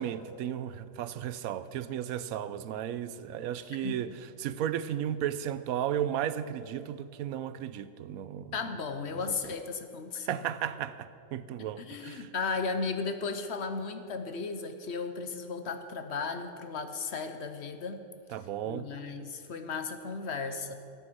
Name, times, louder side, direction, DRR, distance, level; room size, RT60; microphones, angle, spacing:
voice 1, 0.0-4.1 4.4-8.5 10.2-12.3 18.3-18.9, right 10 dB, 85° right, 1.0 m, -34 dB
voice 2, 8.5-10.4 11.6-18.1 18.7-20.7, left 4 dB, 55° left, 1.0 m, -35 dB
14.0 x 9.1 x 6.1 m
omnidirectional pair, 1.5 m